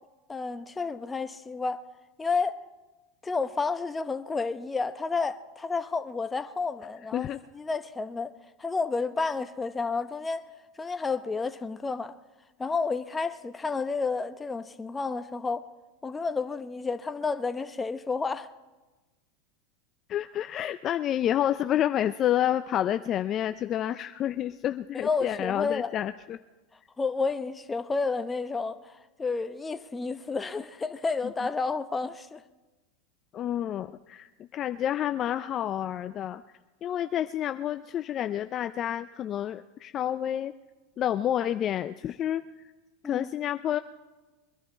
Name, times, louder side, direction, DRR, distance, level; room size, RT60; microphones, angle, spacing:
voice 1, 0.3-1.8 2.2-2.6 3.2-7.3 7.5-8.3 8.6-10.5 10.8-12.1 12.6-15.6 16.0-18.5 25.0-25.9 27.0-28.9 29.2-32.4 43.0-43.3, left 4 dB, 15° left, 0.9 m, -30 dB
voice 2, 20.1-26.4 33.3-36.4 36.8-40.5 41.0-42.4 43.0-43.8, left 11 dB, 40° left, 0.5 m, -29 dB
23.0 x 11.0 x 4.5 m
hypercardioid pair, 105°, 0 cm